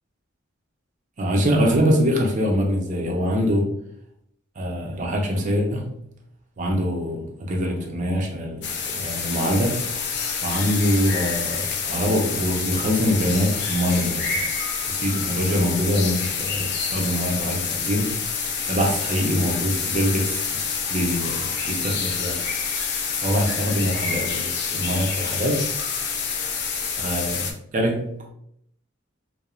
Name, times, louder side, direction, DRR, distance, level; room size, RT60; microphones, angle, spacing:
voice 1, 1.2-3.7 4.6-5.9 6.6-8.7 8.9-9.8 10.4-14.4 14.9-18.2 18.7-20.5 20.9-22.4 23.2-25.6 27.0-28.3, equal, 40° right, 1 dB, 0.5 m, -24 dB
sound 1, 8.6-27.5, left 6 dB, 60° left, 0.4 m, -27 dB
2.9 x 2.0 x 2.3 m, 0.72 s
head